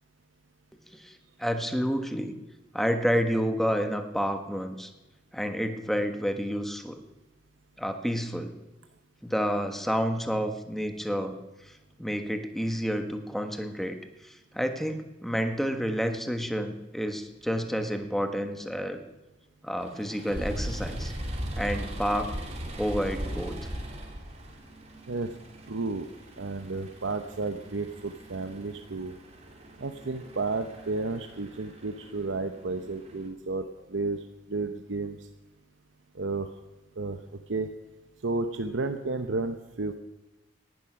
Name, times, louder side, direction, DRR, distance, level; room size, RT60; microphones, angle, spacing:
voice 1, 0.9-2.3 2.7-4.9 5.3-7.0 7.8-8.5 9.2-11.4 11.6-11.7 12.0-14.0 14.2-19.0 19.6-21.1 21.5-22.4 22.8-23.5, equal, ahead, 6 dB, 1.3 m, -29 dB
sound 1, 19.8-33.3, equal, 35° right, 2.9 m, -39 dB
voice 2, 25.7-26.1 26.4-29.1 29.8-34.2 34.5-35.2 36.2-36.5 37.0-37.2 37.5-37.7 38.2-40.0, right 3 dB, 80° right, 7 dB, 0.9 m, -32 dB
18.0 x 11.0 x 6.2 m, 1.0 s
head